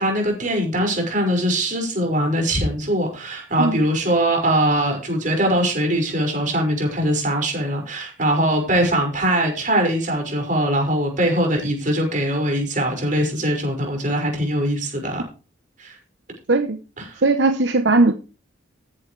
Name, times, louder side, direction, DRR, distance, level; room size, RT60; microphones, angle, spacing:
voice 1, 0.0-15.2 15.8-16.0 17.0-17.2, right 1 dB, 40° right, 2 dB, 5.8 m, -21 dB
voice 2, 17.2-18.2, right 2 dB, 65° right, 8 dB, 1.0 m, -18 dB
14.0 x 11.0 x 3.3 m, 0.33 s
head